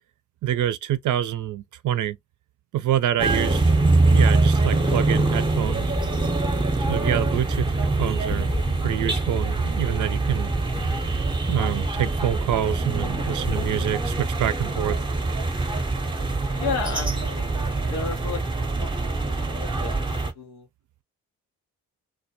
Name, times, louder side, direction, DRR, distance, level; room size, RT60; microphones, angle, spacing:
voice 1, 0.4-2.2 2.7-3.6 4.1-6.0 6.9-8.5 8.8-10.5 11.5-15.0, right 11 dB, 50° right, 0.5 m, -26 dB
sound 1, 3.2-20.3, right 2 dB, 10° right, 0.7 m, -24 dB
sound 2, 4.5-15.0, left 3 dB, 20° left, 0.5 m, -40 dB
sound 3, 6.0-9.9 10.3-12.5 12.9-14.3, left 2 dB, 45° left, 0.8 m, -43 dB
voice 2, 7.3-7.8 16.5-20.7, left 5 dB, 85° left, 0.8 m, -34 dB
2.1 x 2.1 x 2.7 m
hypercardioid pair, 40°, 40 cm